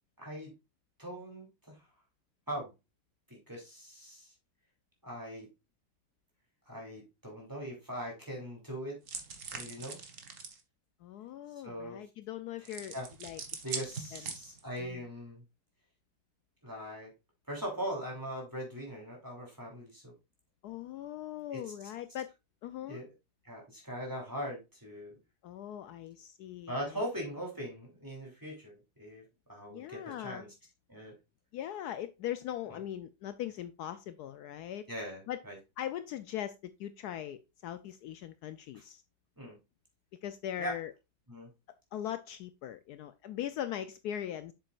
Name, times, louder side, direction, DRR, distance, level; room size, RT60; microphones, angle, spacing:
voice 1, 0.2-0.5 1.0-1.8 2.5-2.7 3.3-4.3 5.0-5.5 6.7-9.0 9.5-10.0 11.6-12.0 12.6-13.1 13.6-15.4 16.6-17.1 17.5-20.1 21.5-21.6 22.8-23.1 23.4-25.2 26.7-28.7 29.0-29.2 29.5-30.5 30.9-31.1 32.7-32.8 34.9-35.6 38.7-38.8 39.4-39.6 40.6-40.8 41.3-41.5, equal, 10° right, 3.1 m, -40 dB
sound 1, 9.1-10.6 12.6-14.8, right 5 dB, 50° right, 1.4 m, -42 dB
voice 2, 11.0-12.9 13.2-13.4 14.1-14.2 14.8-15.0 20.6-22.3 22.6-23.0 25.4-26.7 29.7-30.4 31.5-34.8 35.3-35.4 35.8-39.0 40.2-40.9 41.9-44.5, left 11 dB, 75° left, 1.1 m, -40 dB
7.6 x 7.1 x 2.4 m
omnidirectional pair, 1.8 m